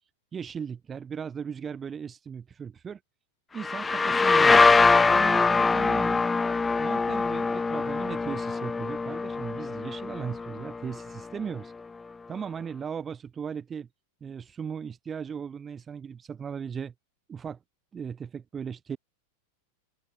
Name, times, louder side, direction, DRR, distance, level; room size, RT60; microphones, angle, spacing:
voice 1, 0.3-3.0 3.5-6.3 6.8-11.7 12.3-13.9 14.2-16.9 17.3-17.6 17.9-19.0, right 7 dB, 20° right, 3.0 m, -37 dB
sound 1, 3.6-11.2, left 4 dB, 10° left, 1.2 m, -23 dB
open air
figure-of-eight pair, 90°, 0 cm